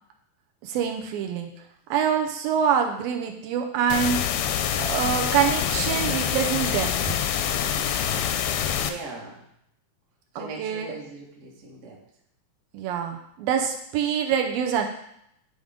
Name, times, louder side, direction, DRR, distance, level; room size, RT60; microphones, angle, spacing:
voice 1, 0.6-1.5 1.9-4.3 4.8-7.2 10.4-11.0 12.7-14.9, right 8 dB, 75° right, 3 dB, 2.3 m, -25 dB
sound 1, 3.9-8.9, left 9 dB, 85° left, 2.5 m, -26 dB
voice 2, 8.7-9.4 10.3-12.0, right 2 dB, 50° right, -3 dB, 0.8 m, -39 dB
10.5 x 3.9 x 5.1 m, 0.74 s
omnidirectional pair, 4.4 m